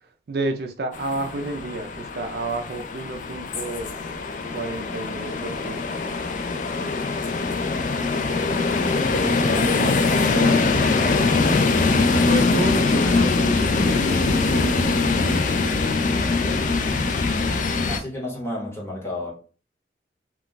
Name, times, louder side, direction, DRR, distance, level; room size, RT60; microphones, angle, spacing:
voice 1, 0.3-3.9 4.5-5.8 9.1-9.9 10.3-11.1 12.2-14.5 15.1-15.5, right 2 dB, 60° right, 0.4 m, -31 dB
sound 1, 0.9-18.0, left 3 dB, 45° left, 0.3 m, -22 dB
voice 2, 17.9-19.3, left 1 dB, 15° left, 0.9 m, -31 dB
2.3 x 2.2 x 3.8 m
head